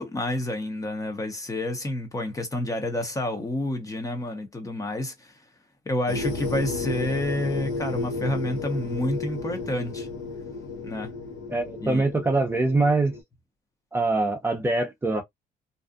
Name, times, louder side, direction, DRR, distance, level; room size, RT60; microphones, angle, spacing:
voice 1, 0.0-5.3 5.9-10.1 10.8-11.1 11.8-12.0, left 1 dB, 20° left, 0.8 m, -29 dB
sound 1, 6.1-13.2, left 3 dB, 85° left, 1.2 m, -33 dB
voice 2, 11.5-13.1 13.9-15.2, right 2 dB, 15° right, 0.7 m, -23 dB
2.6 x 2.3 x 2.4 m
cardioid pair, 110°, 17 cm